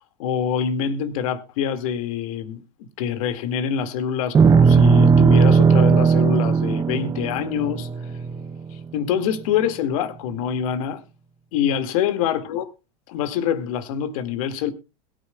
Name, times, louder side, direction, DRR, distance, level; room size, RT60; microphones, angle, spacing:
voice 1, 0.0-7.9 8.9-11.0 11.5-12.7 13.1-14.7, left 8 dB, 65° left, 1.9 m, -25 dB
sound 1, 4.3-8.8, right 5 dB, 20° right, 0.6 m, -16 dB
21.0 x 9.5 x 2.2 m
hypercardioid pair, 105°, 19 cm